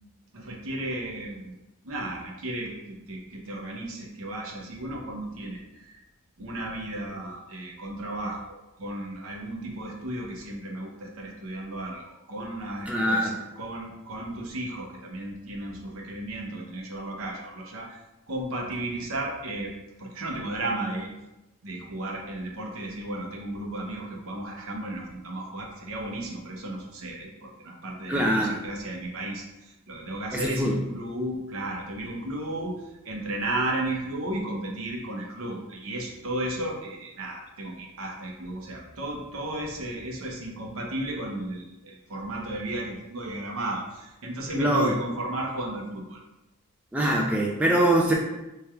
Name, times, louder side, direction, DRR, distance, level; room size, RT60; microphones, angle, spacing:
voice 1, 0.3-1.5 1.8-6.0 6.4-18.0 18.3-19.7 20.0-21.1 21.6-46.2, right 1 dB, 65° right, 0 dB, 0.8 m, -34 dB
voice 2, 12.9-13.4 28.1-28.6 30.3-30.8 44.5-45.0 46.9-48.1, right 1 dB, 5° right, -1 dB, 0.3 m, -23 dB
3.3 x 2.3 x 4.3 m, 0.98 s
head